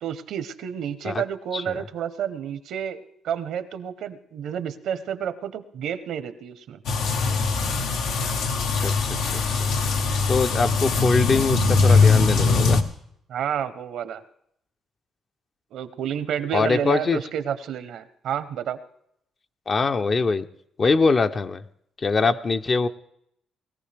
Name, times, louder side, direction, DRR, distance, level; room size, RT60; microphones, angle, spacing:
voice 1, 0.0-6.8 11.9-12.1 13.3-14.2 15.7-18.8, right 8 dB, 75° right, 12 dB, 0.9 m, -30 dB
sound 1, 6.9-12.8, left 4 dB, 80° left, 1.1 m, -21 dB
voice 2, 8.7-9.7 10.3-12.8 16.5-17.2 19.7-20.5 20.8-21.6 22.0-22.9, left 4 dB, 40° left, 9 dB, 0.7 m, -23 dB
20.0 x 14.5 x 3.4 m, 0.73 s
cardioid pair, 90°, 0 cm